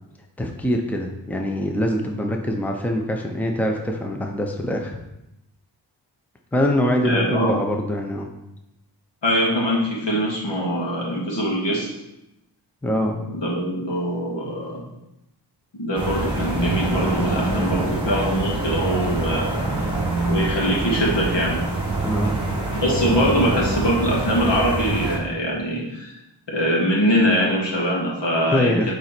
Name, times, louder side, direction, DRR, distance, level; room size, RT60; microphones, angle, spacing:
voice 1, 0.4-5.0 6.5-8.3 12.8-13.2 22.0-22.4 28.5-28.9, left 1 dB, 5° left, 2 dB, 0.7 m, -23 dB
voice 2, 7.0-7.6 9.2-11.9 13.3-14.8 15.7-19.7 20.2-21.6 22.7-26.2 26.5-28.9, equal, 75° left, -3 dB, 2.3 m, -23 dB
sound 1, 15.9-25.2, right 2 dB, 10° right, 2.3 m, -25 dB
9.2 x 4.0 x 4.5 m, 0.90 s
wide cardioid pair, 110°, 43 cm